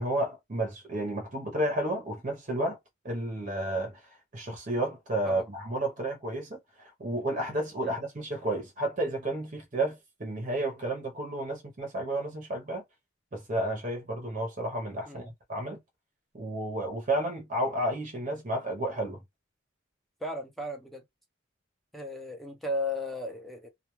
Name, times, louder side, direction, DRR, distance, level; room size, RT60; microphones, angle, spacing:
voice 1, 0.0-2.8 3.0-4.0 4.3-12.8 13.3-15.8 16.3-19.2, right 1 dB, 40° right, 0.8 m, -31 dB
voice 2, 20.2-21.0 21.9-23.7, left 1 dB, ahead, 0.6 m, -35 dB
2.3 x 2.2 x 3.0 m
head